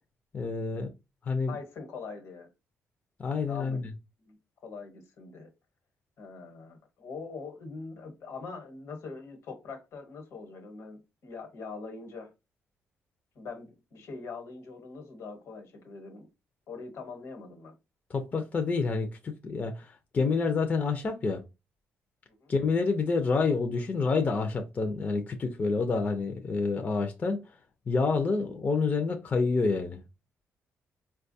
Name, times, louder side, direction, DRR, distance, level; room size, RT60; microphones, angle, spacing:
voice 1, 0.3-0.9 1.2-1.6 3.2-3.9 18.1-21.4 22.5-27.6 27.9-30.0, left 4 dB, 35° left, 0.5 m, -28 dB
voice 2, 1.5-2.5 3.5-3.9 4.2-5.5 6.2-12.3 13.3-16.3 16.7-17.7 22.3-22.5, left 4 dB, 75° left, 1.2 m, -43 dB
4.4 x 2.3 x 2.6 m
cardioid pair, 110°, 5 cm